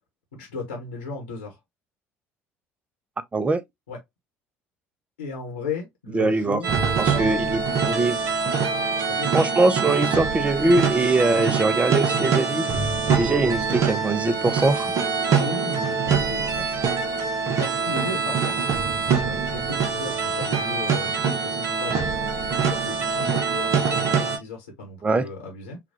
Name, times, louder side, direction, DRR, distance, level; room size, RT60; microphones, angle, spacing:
voice 1, 0.4-1.6 3.9-4.0 5.2-6.7 7.0-7.4 9.1-9.4 15.4-16.7 17.6-18.6 19.1-25.8, left 3 dB, 80° left, 1.2 m, -36 dB
voice 2, 6.1-6.6 7.0-8.2 9.3-12.7 13.1-14.9 25.0-25.3, right 2 dB, 20° right, 0.6 m, -22 dB
sound 1, 6.6-24.4, right 5 dB, 50° right, 0.8 m, -24 dB
5.7 x 2.3 x 2.7 m
figure-of-eight pair, 55°, 7 cm